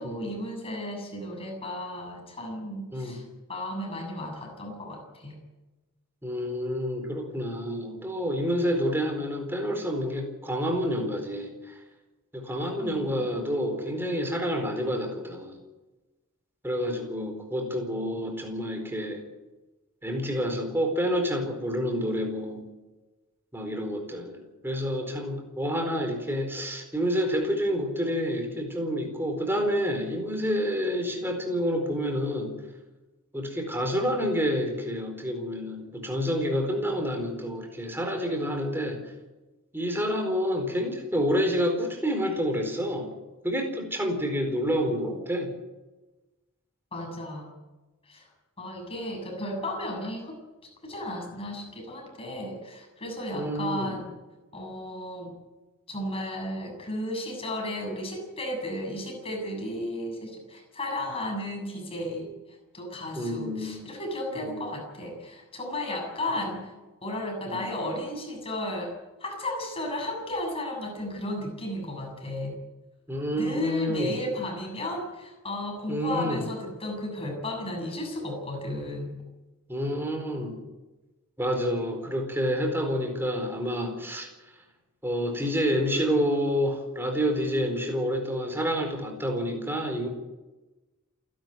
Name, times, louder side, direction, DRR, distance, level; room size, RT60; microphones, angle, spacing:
voice 1, 0.0-3.2 3.5-5.4 12.8-13.3 46.9-47.5 48.1-48.3 48.6-54.1 54.5-55.4 55.9-62.3 62.7-66.7 67.0-72.6 73.3-79.1, left 1 dB, 25° left, 2 dB, 7.1 m, -34 dB
voice 2, 2.9-3.2 6.2-11.8 12.3-15.6 16.6-19.2 20.0-22.6 23.5-32.6 33.3-39.0 39.7-43.1 43.4-45.5 53.3-54.0 63.2-63.7 64.4-64.7 66.4-66.5 67.5-67.7 73.1-74.1 75.9-76.4 79.7-80.6 81.4-84.3 85.0-90.1, equal, 10° right, 4 dB, 4.4 m, -28 dB
28.0 x 12.0 x 9.3 m, 1.1 s
head